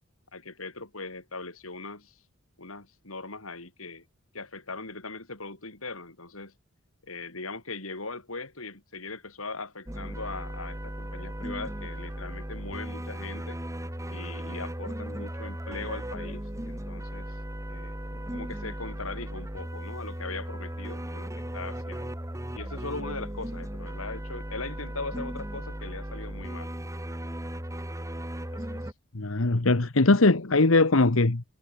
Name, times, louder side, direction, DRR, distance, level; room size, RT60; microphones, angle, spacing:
voice 1, 0.3-2.2 2.6-4.1 4.3-6.5 7.0-13.6 14.1-17.4 17.7-22.1 22.5-26.7 28.5-28.9, left 3 dB, 85° left, 7.4 m, -40 dB
sound 1, 9.9-28.9, right 1 dB, 15° right, 2.5 m, -36 dB
voice 2, 29.1-31.4, left 2 dB, 70° left, 1.3 m, -21 dB
head